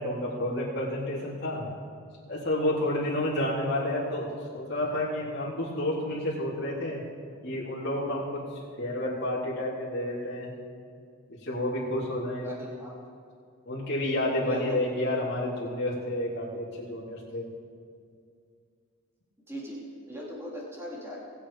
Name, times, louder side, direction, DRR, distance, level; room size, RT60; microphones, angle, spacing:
voice 1, 0.0-1.6 2.3-4.3 4.5-7.0 7.4-10.5 11.4-12.5 13.6-17.5, left 1 dB, 50° left, -8 dB, 3.5 m, -30 dB
voice 2, 12.4-12.9 14.4-14.8 19.5-21.2, equal, 10° right, -5 dB, 2.9 m, -39 dB
20.0 x 7.7 x 5.1 m, 2.3 s
head